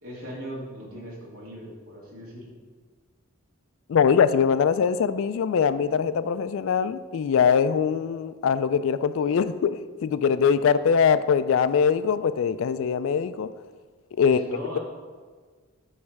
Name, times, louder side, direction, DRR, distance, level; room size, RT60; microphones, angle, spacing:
voice 1, 0.0-2.5 10.9-11.0 14.2-14.8, equal, 70° right, -5 dB, 2.4 m, -39 dB
voice 2, 3.9-13.5 14.2-14.4, left 6 dB, 65° left, 14 dB, 0.3 m, -22 dB
9.6 x 3.2 x 5.9 m, 1.5 s
head